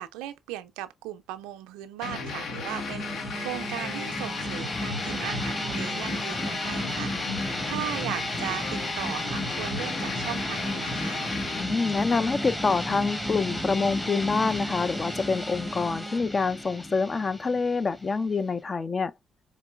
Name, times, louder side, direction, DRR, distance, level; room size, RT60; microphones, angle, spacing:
voice 1, 0.0-11.2, right 13 dB, 80° right, 0.4 m, -37 dB
sound 1, 2.0-11.6, left 4 dB, 65° left, 0.9 m, -35 dB
sound 2, 2.7-16.2, right 2 dB, 20° right, 0.4 m, -41 dB
sound 3, 3.2-18.6, left 1 dB, 20° left, 1.1 m, -34 dB
voice 2, 11.6-19.1, left 4 dB, 40° left, 0.4 m, -26 dB
4.5 x 3.0 x 2.2 m
hypercardioid pair, 50°, 0 cm